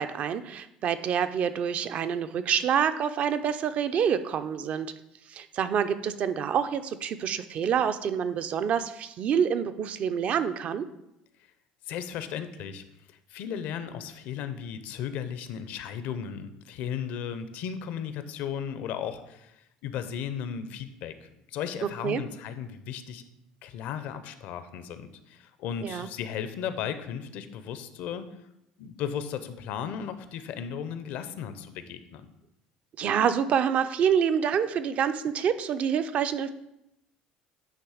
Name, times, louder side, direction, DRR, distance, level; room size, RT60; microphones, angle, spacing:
voice 1, 0.0-4.9 5.3-10.9 22.0-22.2 25.8-26.1 33.0-36.5, right 8 dB, 50° right, 11 dB, 0.5 m, -27 dB
voice 2, 11.9-23.2 23.6-28.3 28.8-32.3, left 8 dB, 65° left, 11 dB, 0.6 m, -36 dB
9.1 x 3.1 x 4.9 m, 0.85 s
supercardioid pair, 105°, 3 cm